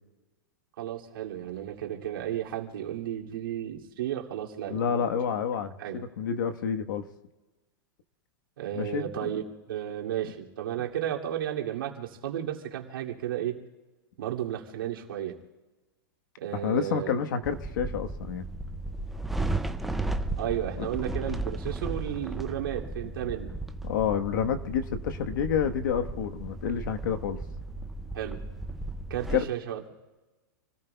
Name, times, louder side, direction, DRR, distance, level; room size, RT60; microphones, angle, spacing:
voice 1, 0.8-5.2 5.8-6.0 8.6-9.4 9.7-13.6 14.2-15.4 16.4-17.1 20.4-23.5 28.1-28.4 29.1-29.9, right 11 dB, 75° right, -1 dB, 2.7 m, -33 dB
voice 2, 4.7-7.0 8.7-9.3 16.5-18.4 20.8-20.9 23.8-27.4 29.3-29.4, left 7 dB, 60° left, 7 dB, 1.3 m, -29 dB
sound 1, 17.4-29.4, right 2 dB, ahead, 0.4 m, -35 dB
28.5 x 18.0 x 2.3 m, 1.2 s
supercardioid pair, 170°, 12 cm